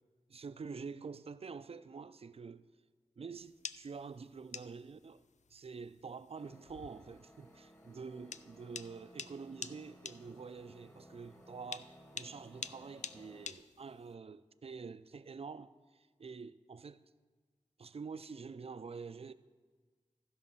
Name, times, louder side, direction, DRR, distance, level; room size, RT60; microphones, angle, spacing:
voice 1, 0.3-2.6 3.2-5.2 5.5-17.0 17.8-19.3, right 5 dB, 50° right, 0.4 m, -47 dB
sound 1, 3.4-14.1, left 6 dB, 65° left, 0.4 m, -48 dB
sound 2, 6.3-13.5, equal, 20° left, 1.2 m, -59 dB
15.0 x 5.3 x 5.5 m
wide cardioid pair, 60°, 13 cm